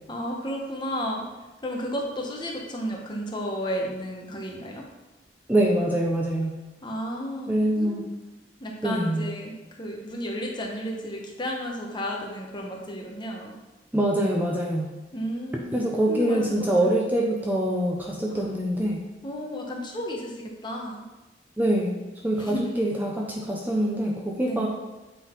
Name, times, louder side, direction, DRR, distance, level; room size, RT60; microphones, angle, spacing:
voice 1, 0.1-1.3 1.6-4.8 6.8-8.1 8.6-13.5 15.1-15.7 16.1-16.9 18.3-18.4 19.2-21.0 22.4-22.8 24.4-24.6, equal, 25° left, 0 dB, 1.0 m, -33 dB
voice 2, 5.5-6.6 7.5-8.0 8.8-9.3 13.9-14.9 15.7-19.0 21.6-24.7, right 1 dB, 10° right, -2 dB, 0.6 m, -24 dB
8.2 x 3.8 x 4.5 m, 1.1 s
head